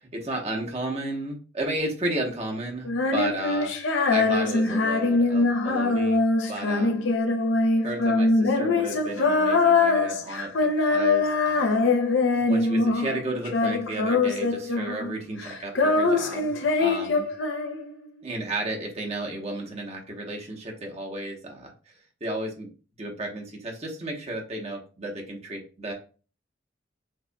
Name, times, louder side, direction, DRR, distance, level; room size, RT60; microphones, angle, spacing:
voice 1, 0.0-7.1 7.8-11.8 12.3-17.3 18.2-21.9 22.2-22.7 23.0-25.9, right 1 dB, 35° right, 1 dB, 1.1 m, -33 dB
Female singing, 2.9-13.2 13.5-15.1 15.4-18.1, left 3 dB, 75° left, 0.6 m, -23 dB
6.5 x 2.4 x 2.2 m, 0.36 s
head